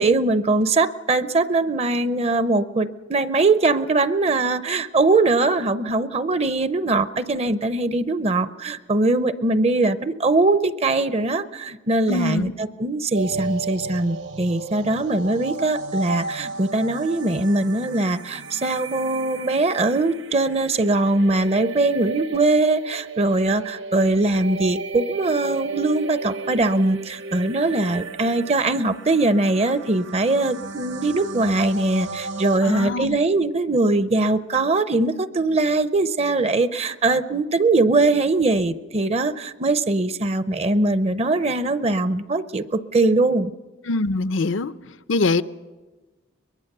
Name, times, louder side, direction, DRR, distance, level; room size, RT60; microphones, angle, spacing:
voice 1, 0.0-43.5, right 2 dB, 30° right, 13 dB, 0.6 m, -21 dB
voice 2, 12.1-12.5 32.6-33.2 43.9-44.7 45.1-45.4, left 3 dB, 75° left, 15 dB, 0.6 m, -23 dB
sound 1, 13.1-32.6, right 3 dB, 65° right, 1.2 m, -34 dB
23.0 x 21.5 x 6.7 m, 1.2 s
head